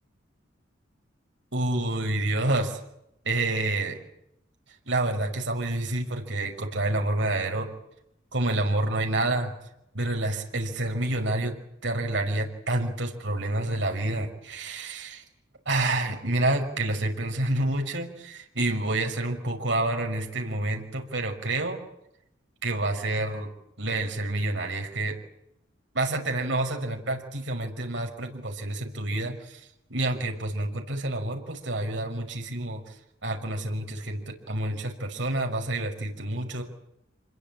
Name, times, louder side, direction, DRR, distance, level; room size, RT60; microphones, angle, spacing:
voice 1, 1.5-2.8 3.2-4.0 4.9-7.7 8.3-9.5 9.9-15.2 15.7-21.8 22.6-23.5 23.8-25.2 25.9-32.9 33.2-36.6, right 2 dB, 70° right, 3 dB, 5.8 m, -28 dB
27.0 x 22.0 x 8.7 m, 0.81 s
head